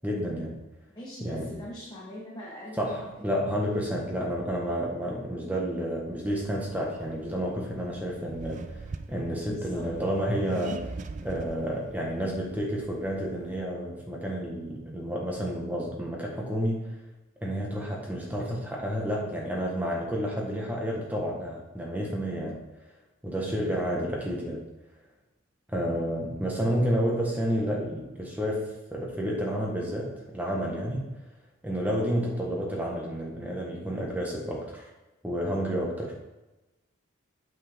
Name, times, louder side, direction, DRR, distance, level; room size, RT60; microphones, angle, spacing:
voice 1, 0.0-0.6 1.2-1.5 2.8-8.8 9.1-10.9 11.2-16.9 17.4-22.6 23.2-24.6 25.7-31.1 31.6-34.9 35.2-36.1, equal, 10° right, -2 dB, 1.3 m, -30 dB
voice 2, 0.9-3.0 9.4-9.9, left 1 dB, 20° left, -5 dB, 1.1 m, -42 dB
Accelerating revving vroom, 6.3-13.6, right 3 dB, 35° right, 0.3 m, -43 dB
8.0 x 6.0 x 3.5 m, 1.0 s
head